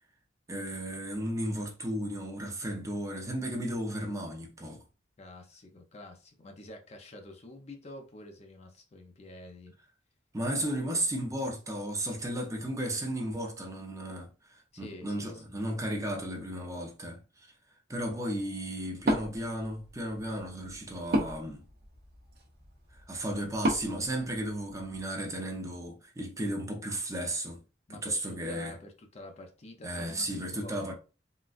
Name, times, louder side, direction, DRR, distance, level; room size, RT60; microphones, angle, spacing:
voice 1, 0.5-4.8 10.3-14.3 14.8-17.5 17.9-21.6 23.1-27.6 27.9-28.8 29.8-30.9, right 1 dB, 15° right, 0.6 m, -34 dB
voice 2, 5.2-9.7 14.7-15.6 27.9-30.8, left 1 dB, 35° left, 0.5 m, -48 dB
Wood, 19.0-25.0, right 1 dB, 55° right, 0.8 m, -35 dB
3.7 x 2.3 x 2.4 m
head